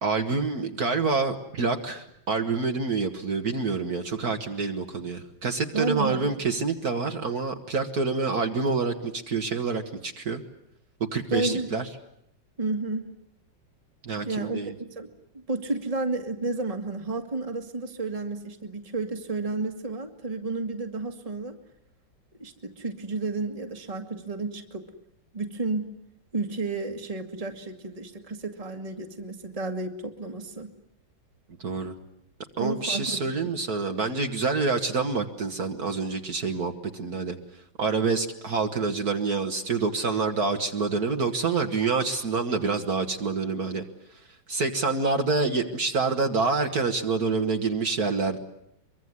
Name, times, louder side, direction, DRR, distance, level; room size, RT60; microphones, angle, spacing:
voice 1, 0.0-10.4 11.1-11.8 14.0-14.7 31.6-32.0 32.6-37.4 37.8-43.8 44.5-48.4, right 4 dB, 50° right, 4 dB, 2.0 m, -27 dB
voice 2, 5.7-6.3 11.3-11.7 12.6-13.1 14.2-14.6 14.9-15.1 15.5-21.6 22.4-24.9 25.3-25.9 26.3-30.7 32.6-33.3, right 3 dB, 20° right, 5 dB, 1.9 m, -31 dB
24.5 x 23.5 x 9.6 m, 0.74 s
omnidirectional pair, 2.0 m